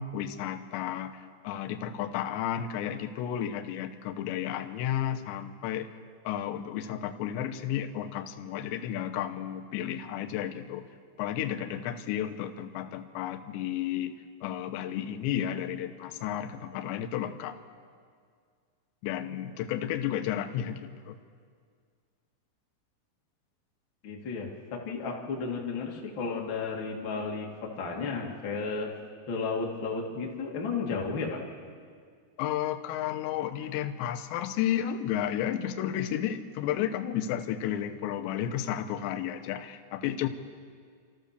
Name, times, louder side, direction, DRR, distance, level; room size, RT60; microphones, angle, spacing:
voice 1, 0.0-5.9 6.2-10.9 11.2-17.6 19.0-21.2 32.4-40.3, left 10 dB, 75° left, 8 dB, 2.7 m, -32 dB
voice 2, 24.0-24.5 24.8-27.5 27.8-28.9 29.3-31.4, left 4 dB, 50° left, -1 dB, 1.4 m, -33 dB
28.5 x 14.0 x 6.7 m, 2.1 s
omnidirectional pair, 6.0 m